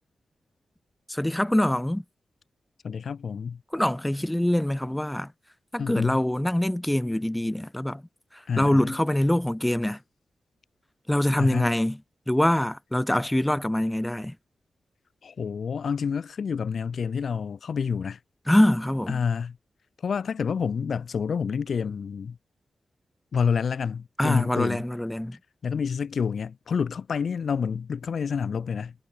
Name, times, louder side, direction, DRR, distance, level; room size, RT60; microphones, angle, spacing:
voice 1, 1.1-2.0 3.7-5.3 5.7-8.0 8.3-10.0 11.1-12.0 12.3-14.4 18.5-19.2 24.2-25.4, left 1 dB, 5° left, 6.3 m, -24 dB
voice 2, 2.8-3.6 5.8-6.2 8.5-8.9 11.4-11.7 15.2-18.2 19.1-19.6 20.0-22.4 23.3-24.8 25.6-28.9, left 6 dB, 60° left, 3.8 m, -28 dB
wide cardioid pair, 135°, 0 cm